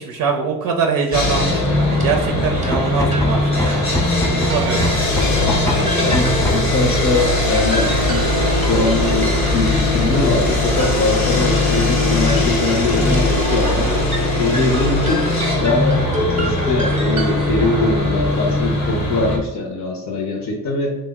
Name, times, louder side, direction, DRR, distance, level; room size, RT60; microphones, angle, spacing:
voice 1, 0.0-3.9 4.3-5.2, right 5 dB, 70° right, 2 dB, 0.5 m, -23 dB
Sawing, 1.1-19.4, left 2 dB, 85° left, 1.0 m, -20 dB
sound 1, 1.2-18.8, equal, 20° right, 0.7 m, -28 dB
sound 2, 2.6-6.8, left 2 dB, 10° left, 0.4 m, -25 dB
voice 2, 5.7-13.9 14.3-15.3 15.6-21.0, left 2 dB, 55° left, 0 dB, 0.6 m, -22 dB
3.1 x 2.1 x 3.4 m, 1.0 s
supercardioid pair, 70°, 35 cm